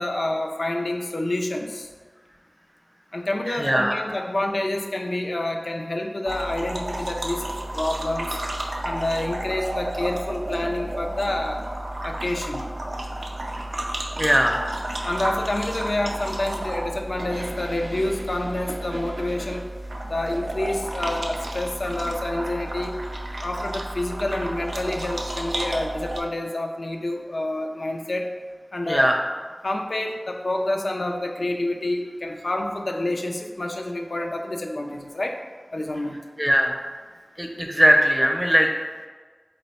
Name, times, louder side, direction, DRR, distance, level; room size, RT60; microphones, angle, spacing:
voice 1, 0.0-1.9 3.1-8.4 8.8-11.6 12.0-12.7 15.0-19.7 20.1-23.0 23.4-28.3 28.7-29.2 29.6-35.4 35.7-36.2, left 1 dB, 75° left, 2 dB, 0.4 m, -28 dB
voice 2, 3.5-4.0 14.2-14.6 28.9-29.2 36.4-36.7 37.4-38.7, equal, 15° right, 2 dB, 0.5 m, -19 dB
sound 1, 6.3-26.2, right 1 dB, 75° right, 0.4 m, -32 dB
4.0 x 2.1 x 4.1 m, 1.5 s
wide cardioid pair, 45°, 0 cm